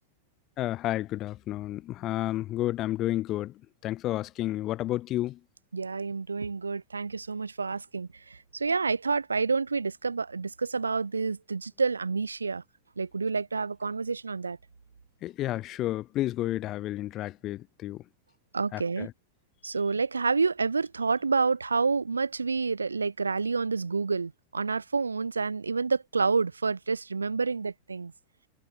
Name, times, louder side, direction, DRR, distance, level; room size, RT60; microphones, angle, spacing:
voice 1, 0.6-3.5 3.8-5.4 15.2-18.0 18.7-19.1, left 15 dB, 35° left, 2.8 m, -31 dB
voice 2, 5.7-12.6 13.0-14.6 18.5-19.1 19.6-28.1, right 4 dB, 75° right, 4.4 m, -29 dB
figure-of-eight pair, 90°, 0 cm